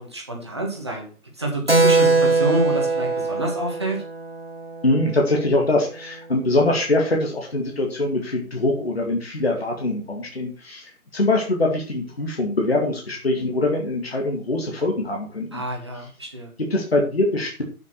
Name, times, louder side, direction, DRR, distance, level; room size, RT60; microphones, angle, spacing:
voice 1, 0.0-4.0 15.5-16.5, right 1 dB, 20° right, 0 dB, 1.8 m, -28 dB
Keyboard (musical), 1.7-5.8, right 3 dB, 45° right, 0.6 m, -22 dB
voice 2, 4.8-15.6 16.7-17.6, left 2 dB, 45° left, 0 dB, 2.5 m, -23 dB
8.0 x 8.0 x 6.0 m, 0.36 s
figure-of-eight pair, 180°, 44 cm